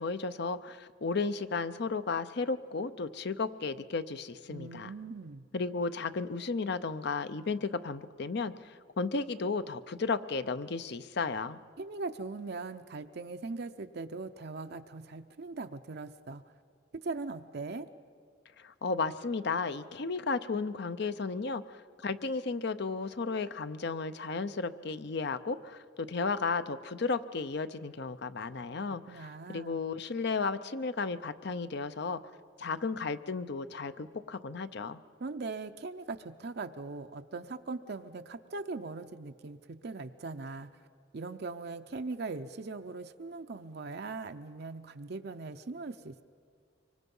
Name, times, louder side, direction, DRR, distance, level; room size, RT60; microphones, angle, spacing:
voice 1, 0.0-4.9 5.5-11.6 18.6-32.2 32.6-35.0, left 4 dB, 55° left, 12 dB, 0.6 m, -34 dB
voice 2, 4.5-5.5 11.8-16.4 17.0-17.9 28.9-29.8 35.2-40.7 41.1-46.2, right 3 dB, 55° right, 7 dB, 0.6 m, -40 dB
25.0 x 24.0 x 5.5 m, 2.1 s
head